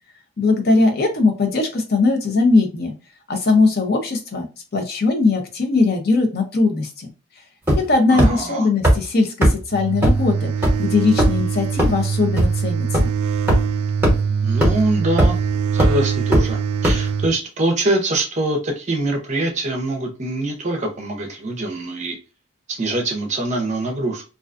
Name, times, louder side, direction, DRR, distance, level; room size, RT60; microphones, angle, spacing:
voice 1, 0.4-2.9 3.3-4.5 4.7-7.1 7.9-10.5 10.8-13.1, left 3 dB, 45° left, 0.5 m, -19 dB
sound 1, 7.7-7.9 8.2-8.3 8.8-8.9 9.4-9.5 10.0-10.1 10.6-10.7 11.2-11.4 11.8-11.9 12.4-12.5 12.9-13.0 13.5-13.6 14.0-14.1 14.6-14.7 15.2-15.4 15.8-15.9 16.3-16.4 16.8-16.9, equal, 10° right, 0.9 m, -14 dB
voice 2, 8.1-8.7 14.4-15.4 15.7-22.2 22.7-24.2, right 2 dB, 35° right, 0.5 m, -24 dB
sound 2, 9.7-17.3, right 6 dB, 90° right, 0.3 m, -23 dB
2.4 x 2.2 x 2.4 m
head